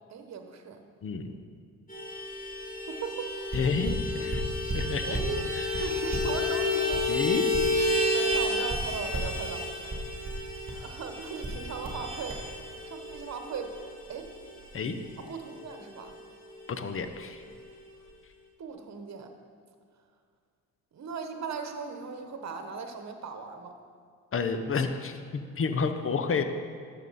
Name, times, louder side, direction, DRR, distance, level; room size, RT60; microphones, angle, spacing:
voice 1, 0.1-0.9 2.8-3.3 4.1-4.2 5.0-5.5 5.7-7.1 8.0-9.7 10.7-12.4 12.8-13.7 14.1-14.3 15.2-16.2 18.6-19.4 20.9-23.8, right 5 dB, 55° right, 6 dB, 1.2 m, -38 dB
voice 2, 1.0-1.3 3.5-4.4 4.7-5.2 7.1-7.5 14.7-15.0 16.7-17.4 24.3-26.4, left 5 dB, 40° left, 9 dB, 0.8 m, -30 dB
Vehicle horn car horn honking, 1.9-15.8 16.1-16.2 16.5-16.7 16.9-17.6, left 2 dB, 25° left, 2.9 m, -32 dB
sound 1, 3.5-5.4 5.7-8.0 8.3-9.4 9.9-10.9 11.4-12.0 12.3-12.5, right 2 dB, 20° right, 2.3 m, -34 dB
12.0 x 7.1 x 4.2 m, 2.1 s
cardioid pair, 75°, 33 cm